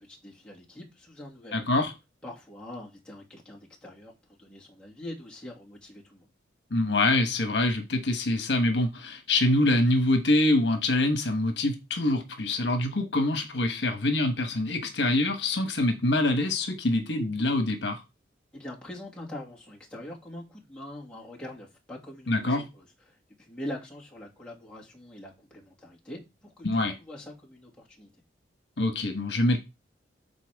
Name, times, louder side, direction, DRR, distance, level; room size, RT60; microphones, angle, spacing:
voice 1, 0.0-1.7 2.2-4.1 4.4-6.3 18.5-28.1, left 1 dB, 5° left, 2.3 m, -43 dB
voice 2, 1.5-1.9 6.7-18.0 22.3-22.6 26.6-26.9 28.8-29.6, left 2 dB, 70° left, 1.2 m, -25 dB
12.0 x 4.3 x 3.5 m
head